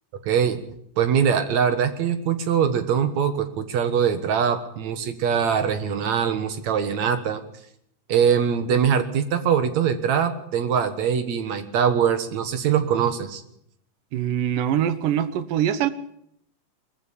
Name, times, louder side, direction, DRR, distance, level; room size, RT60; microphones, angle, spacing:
voice 1, 0.3-0.6 1.0-7.4 8.1-13.4, right 7 dB, 65° right, 9 dB, 2.6 m, -22 dB
voice 2, 14.1-15.9, right 10 dB, 85° right, 13 dB, 2.8 m, -23 dB
22.0 x 14.5 x 8.5 m, 0.72 s
omnidirectional pair, 3.7 m